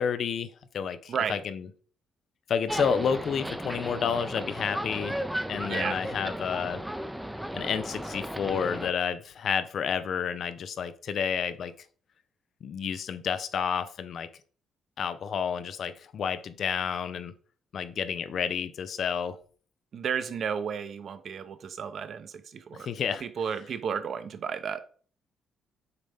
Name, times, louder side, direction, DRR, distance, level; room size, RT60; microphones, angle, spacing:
voice 1, 0.0-1.7 2.5-5.1 5.5-6.8 7.5-11.7 12.6-14.3 15.0-17.3 17.7-19.4 22.7-23.6, left 7 dB, 60° left, 12 dB, 0.6 m, -30 dB
sound 1, 2.7-8.9, right 1 dB, 5° right, 0.6 m, -35 dB
voice 2, 19.9-22.9 23.2-24.8, right 7 dB, 60° right, 11 dB, 0.7 m, -33 dB
6.7 x 4.1 x 3.5 m, 0.44 s
cardioid pair, 90°, 0 cm